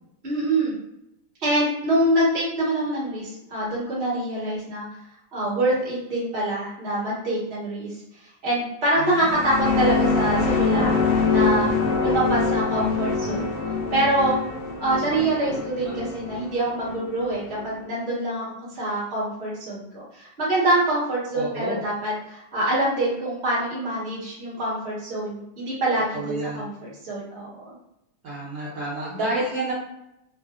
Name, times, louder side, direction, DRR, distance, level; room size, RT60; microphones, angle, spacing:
voice 1, 0.2-0.7 1.4-4.9 5.3-11.7 12.0-13.5 13.9-14.4 14.8-18.4 18.7-27.6, right 1 dB, 30° right, -8 dB, 1.0 m, -25 dB
voice 2, 9.0-9.3 15.2-15.9 21.3-21.8 26.1-26.7 28.2-29.7, right 2 dB, 70° right, -6 dB, 1.3 m, -30 dB
sound 1, 9.1-17.7, left 4 dB, 75° left, 1.0 m, -24 dB
3.5 x 2.1 x 2.3 m, 0.85 s
omnidirectional pair, 2.3 m